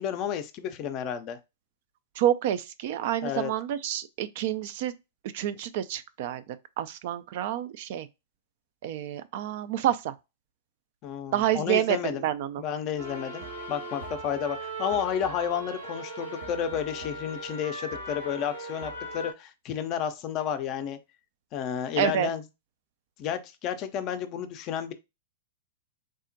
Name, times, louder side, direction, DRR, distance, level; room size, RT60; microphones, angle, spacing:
voice 1, 0.0-1.4 3.2-3.5 11.0-12.2 12.6-21.0 21.5-22.4 23.2-24.9, left 9 dB, 35° left, 0.5 m, -31 dB
voice 2, 2.2-4.9 5.3-6.4 6.8-8.1 8.8-10.1 11.3-12.6 22.0-22.3, right 11 dB, 50° right, 0.3 m, -28 dB
sound 1, 13.0-19.3, right 1 dB, 80° right, 1.3 m, -38 dB
3.5 x 2.0 x 2.6 m
figure-of-eight pair, 105°, 0 cm